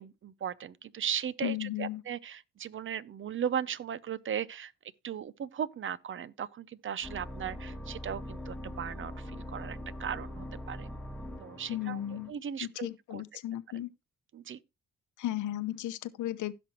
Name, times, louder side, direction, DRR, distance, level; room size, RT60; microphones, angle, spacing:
voice 1, 0.0-4.7 5.0-10.9 11.4-12.0 12.3-12.9 13.1-13.2 14.3-14.6, right 8 dB, 40° right, 0.6 m, -37 dB
voice 2, 1.4-2.0 11.7-12.3 12.6-13.9 15.2-16.5, left 13 dB, 80° left, 0.8 m, -35 dB
sound 1, 7.0-12.3, left 1 dB, 5° left, 1.3 m, -42 dB
16.0 x 6.1 x 3.0 m
cardioid pair, 90°, 30 cm